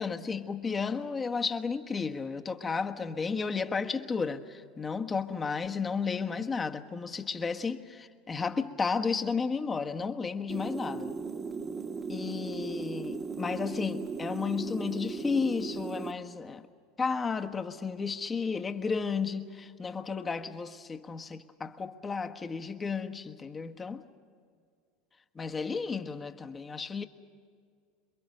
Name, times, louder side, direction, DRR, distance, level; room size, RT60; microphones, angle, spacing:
voice 1, 0.0-11.1 12.1-16.6 17.0-24.0 25.3-27.0, left 5 dB, 25° left, 1.4 m, -33 dB
sound 1, 10.5-16.1, right 5 dB, 25° right, 1.4 m, -37 dB
28.0 x 22.5 x 6.7 m
hypercardioid pair, 100°, 0 cm